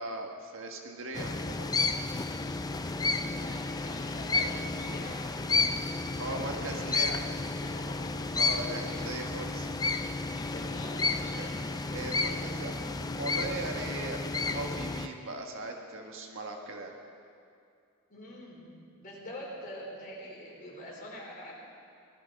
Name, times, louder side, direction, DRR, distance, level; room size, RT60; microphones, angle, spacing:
voice 1, 0.0-1.7 6.2-7.2 8.3-9.7 11.2-11.5 11.9-14.2 14.5-16.9, right 2 dB, 60° right, 2 dB, 1.5 m, -39 dB
sound 1, 1.1-15.1, left 3 dB, 15° left, 0.5 m, -32 dB
voice 2, 3.4-5.2 6.1-7.2 7.6-8.1 8.8-9.1 10.3-11.5 12.2-12.8 18.1-21.6, equal, 40° left, -4 dB, 4.3 m, -45 dB
18.0 x 12.5 x 5.3 m, 2.4 s
head